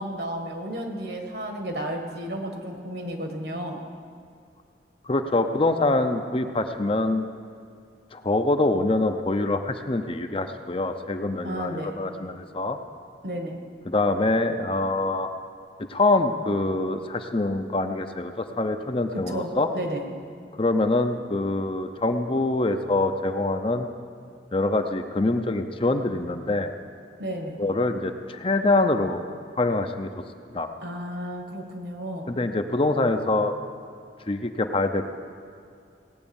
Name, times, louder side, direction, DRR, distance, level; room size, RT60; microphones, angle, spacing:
voice 1, 0.0-3.8 11.4-11.9 13.2-13.6 19.1-20.0 27.2-27.6 30.8-32.3, right 1 dB, 60° right, 3 dB, 1.7 m, -32 dB
voice 2, 5.1-7.3 8.1-12.8 13.9-15.3 15.9-19.7 20.6-23.9 24.5-26.7 27.6-29.2 29.6-30.1 30.5-30.7 32.3-33.5 34.3-35.1, left 2 dB, 30° left, 7 dB, 0.6 m, -24 dB
17.5 x 8.8 x 7.1 m, 2.3 s
head